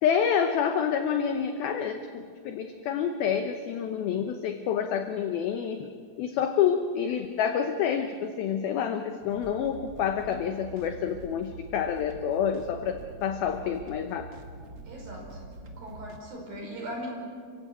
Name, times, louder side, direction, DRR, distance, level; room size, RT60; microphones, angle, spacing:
voice 1, 0.0-5.9 6.2-14.3, left 8 dB, 80° left, 7 dB, 2.2 m, -28 dB
sound 1, 9.2-16.2, right 2 dB, 65° right, 1.3 m, -45 dB
voice 2, 14.8-15.4 15.8-17.1, equal, 50° right, 0 dB, 6.9 m, -39 dB
28.5 x 16.0 x 8.3 m, 2.2 s
omnidirectional pair, 5.5 m